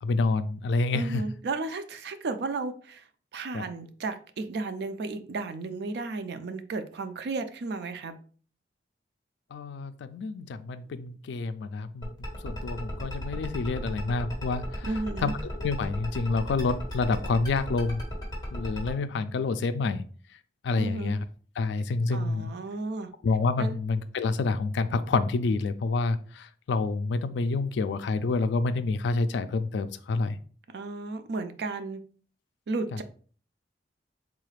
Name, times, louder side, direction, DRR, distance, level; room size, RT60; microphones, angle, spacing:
voice 1, 0.0-1.2 3.5-3.6 9.5-12.1 12.4-14.9 15.2-15.3 15.6-18.0 18.5-20.0 20.6-21.2 21.6-22.5 23.2-30.4 32.9-33.0, left 3 dB, 75° left, 12 dB, 0.3 m, -28 dB
voice 2, 0.9-3.1 3.3-8.2 14.8-15.3 20.8-21.1 22.1-23.1 23.6-23.8 30.7-32.0 32.7-33.0, right 3 dB, 65° right, 10 dB, 0.4 m, -33 dB
sound 1, 12.0-18.9, left 1 dB, 25° left, 1.3 m, -36 dB
3.7 x 2.4 x 3.2 m, 0.42 s
head